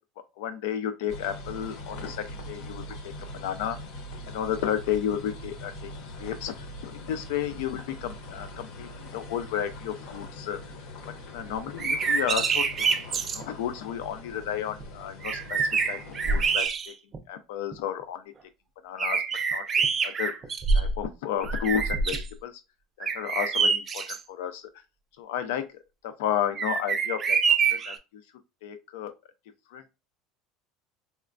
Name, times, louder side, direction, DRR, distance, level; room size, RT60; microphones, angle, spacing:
voice 1, 0.4-3.1 3.4-3.8 4.3-5.9 6.2-6.5 6.8-10.6 11.3-12.6 13.3-15.6 15.9-16.9 17.3-18.2 18.8-19.2 19.5-19.6 20.0-20.3 20.7-22.5 23.0-24.7 25.2-25.6 26.0-27.4 27.7-28.0 28.6-29.1 29.7-30.0, left 9 dB, 85° left, 0.4 m, -32 dB
FP Van Driving On Gravel, 1.1-16.6, left 1 dB, 60° left, 0.7 m, -42 dB
sound 1, 11.7-13.4 14.8-14.9 15.2-17.2 17.7-17.8 19.0-21.0 21.4-22.3 23.0-24.2 26.5-28.0, right 5 dB, 20° right, 0.4 m, -26 dB
4.2 x 2.1 x 2.4 m
cardioid pair, 165°, 0 cm